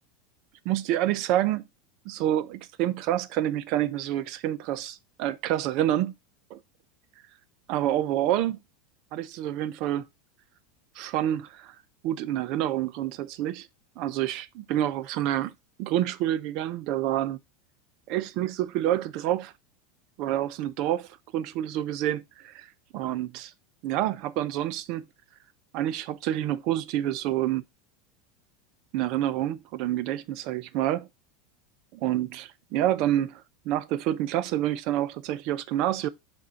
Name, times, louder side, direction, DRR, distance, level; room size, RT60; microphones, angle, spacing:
voice 1, 0.6-1.6 2.0-6.1 6.5-6.6 7.7-8.6 9.1-10.1 11.0-11.7 12.0-13.7 14.0-15.5 15.8-17.4 18.1-19.5 20.2-23.5 23.8-25.0 25.7-27.6 28.9-31.1 31.9-36.1, right 12 dB, 55° right, 0.6 m, -28 dB
5.3 x 3.6 x 5.6 m
hypercardioid pair, 90°, 0 cm